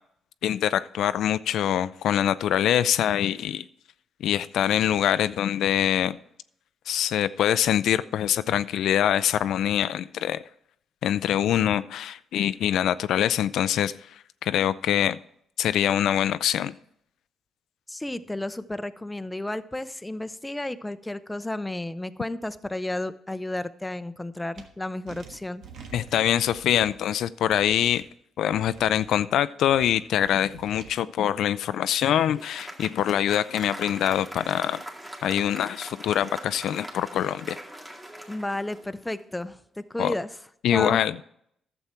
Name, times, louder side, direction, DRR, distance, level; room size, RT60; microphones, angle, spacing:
voice 1, 0.4-3.6 4.2-6.2 6.9-10.4 11.0-13.9 14.4-15.2 15.6-16.7 25.9-28.0 28.4-34.8 35.2-37.6 40.0-40.1 40.6-41.2, left 10 dB, 75° left, 14 dB, 0.3 m, -24 dB
voice 2, 17.9-25.6 38.3-40.3 40.7-41.0, left 1 dB, 10° left, 12 dB, 0.6 m, -32 dB
sound 1, 24.6-24.7 25.1-27.0 27.5-28.0 28.5-29.1 29.6-30.9, right 6 dB, 70° right, 1.4 m, -47 dB
Applause, 31.8-39.3, right 1 dB, 15° right, 2.0 m, -42 dB
11.5 x 7.1 x 4.4 m, 0.70 s
cardioid pair, 90°, 0 cm